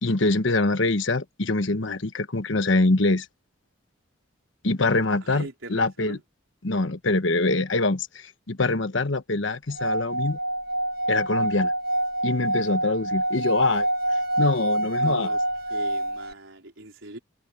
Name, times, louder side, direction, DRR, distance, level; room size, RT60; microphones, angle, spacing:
voice 1, 0.0-3.3 4.6-6.2 6.6-10.4 11.1-11.7 12.2-13.9 14.4-15.3, left 2 dB, 75° left, 1.3 m, -24 dB
voice 2, 5.2-6.2 15.0-15.4 15.7-17.2, right 2 dB, 85° right, 4.2 m, -41 dB
Singing / Glass, 9.7-16.3, right 1 dB, 50° right, 1.4 m, -26 dB
head